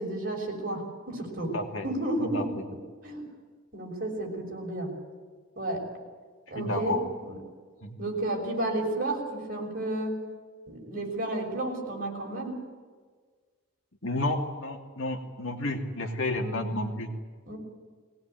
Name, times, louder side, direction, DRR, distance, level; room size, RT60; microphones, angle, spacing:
voice 1, 0.0-1.5 1.8-2.5 3.0-3.3 3.7-4.9 5.6-5.8 6.5-7.4 8.0-10.2 10.7-12.6 16.4-16.7 17.5-17.6, right 2 dB, 40° right, 1 dB, 6.3 m, -32 dB
voice 2, 1.5-1.9 2.2-2.6 6.5-7.0 7.8-8.0 14.0-17.1, left 2 dB, 60° left, 3 dB, 2.8 m, -31 dB
21.5 x 19.0 x 9.2 m, 1.5 s
head